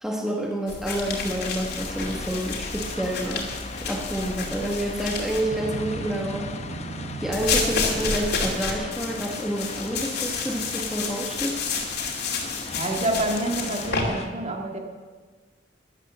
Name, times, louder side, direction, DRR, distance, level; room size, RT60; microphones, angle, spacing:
voice 1, 0.0-3.5 3.7-6.5 7.2-11.6, right 1 dB, 5° right, 0 dB, 1.2 m, -28 dB
sound 1, 0.7-5.4 7.3-14.0, left 4 dB, 60° left, 2.6 m, -30 dB
sound 2, 1.0-14.3, left 3 dB, 40° left, 0.9 m, -38 dB
Motorcycle, 5.5-10.7, right 3 dB, 60° right, 0.5 m, -39 dB
voice 2, 12.7-14.8, right 1 dB, 40° right, 2 dB, 1.9 m, -27 dB
13.0 x 11.5 x 7.2 m, 1.4 s
head